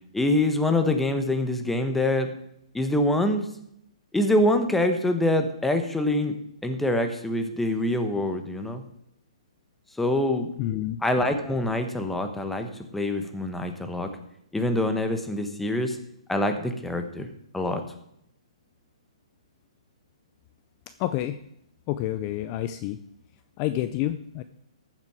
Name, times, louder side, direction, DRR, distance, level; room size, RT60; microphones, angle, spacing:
voice 1, 0.1-2.3 2.7-3.5 4.1-6.3 6.6-8.8 10.0-10.5 11.0-14.1 14.5-16.0 16.3-17.3 17.5-17.8, left 1 dB, 5° left, 6 dB, 1.1 m, -25 dB
voice 2, 10.6-11.0 21.0-21.4 21.9-23.0 23.6-24.4, left 13 dB, 30° left, 11 dB, 0.5 m, -28 dB
14.0 x 7.5 x 4.9 m, 0.74 s
hypercardioid pair, 145°, 3 cm